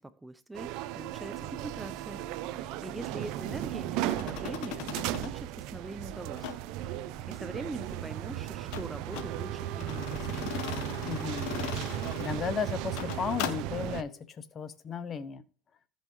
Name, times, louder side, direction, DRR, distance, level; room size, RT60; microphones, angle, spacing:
voice 1, 0.0-2.2 2.5-6.6 6.9-10.5, right 2 dB, 10° right, 0.6 m, -43 dB
sound 1, 0.5-14.0, right 13 dB, 70° right, 0.5 m, -36 dB
sound 2, 4.1-5.3 6.4-6.6 8.7-9.3 9.8-12.4 12.8-13.6, left 11 dB, 75° left, 0.9 m, -38 dB
Wind instrument woodwind instrument, 9.1-14.3, right 8 dB, 45° right, 1.0 m, -46 dB
voice 2, 11.0-11.5 11.9-15.4, left 6 dB, 35° left, 0.9 m, -35 dB
15.5 x 5.5 x 3.1 m
supercardioid pair, 100°, 0 cm